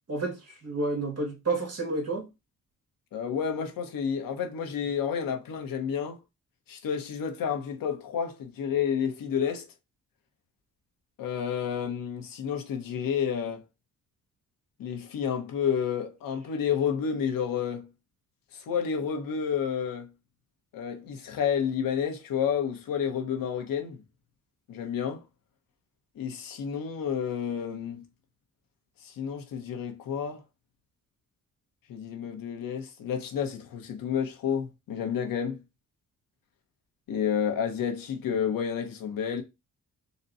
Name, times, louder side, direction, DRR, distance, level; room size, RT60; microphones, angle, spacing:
voice 1, 0.1-2.3, right 3 dB, 50° right, 1.7 m, -30 dB
voice 2, 3.1-6.2 6.7-9.7 11.2-13.6 14.8-17.9 18.5-20.1 20.7-24.0 24.7-25.2 26.2-28.0 29.0-30.4 31.9-35.6 37.1-39.4, left 7 dB, 80° left, 1.0 m, -30 dB
4.0 x 2.2 x 4.0 m
cardioid pair, 105°, 33 cm